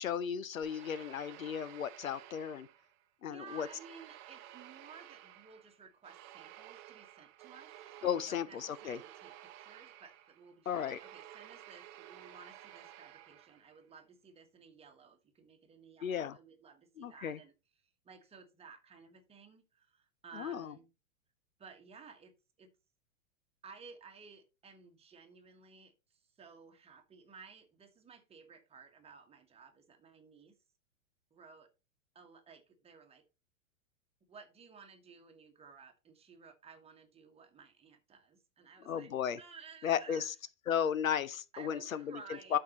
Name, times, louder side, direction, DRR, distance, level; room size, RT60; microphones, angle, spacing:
voice 1, 0.0-2.7 3.2-3.7 8.0-9.0 10.7-11.0 16.0-16.4 17.0-17.4 20.4-20.7 38.9-39.4 39.8-40.3 40.7-42.2 42.5-42.6, left 8 dB, 75° left, 0.7 m, -34 dB
sound 1, 0.6-3.0 3.5-13.8, right 13 dB, 35° right, 0.8 m, -54 dB
voice 2, 3.3-17.5 18.0-20.9 21.6-22.7 23.6-30.6 31.3-31.7 32.1-33.2 34.3-40.3 41.5-42.6, right 5 dB, 15° right, 1.5 m, -56 dB
12.5 x 4.4 x 3.0 m
figure-of-eight pair, 100°, 41 cm